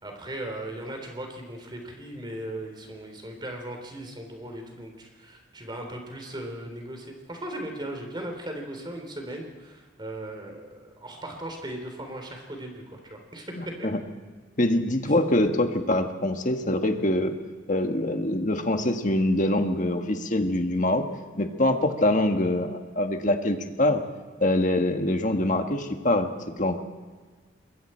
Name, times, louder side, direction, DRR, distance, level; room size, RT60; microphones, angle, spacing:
voice 1, 0.0-13.9 15.0-15.1, right 1 dB, 25° right, 3 dB, 3.6 m, -38 dB
voice 2, 14.6-17.3 17.7-21.0 21.4-24.0 24.4-26.3 26.6-27.0, left 1 dB, 40° left, 5 dB, 1.6 m, -24 dB
26.5 x 22.0 x 4.5 m, 1.5 s
head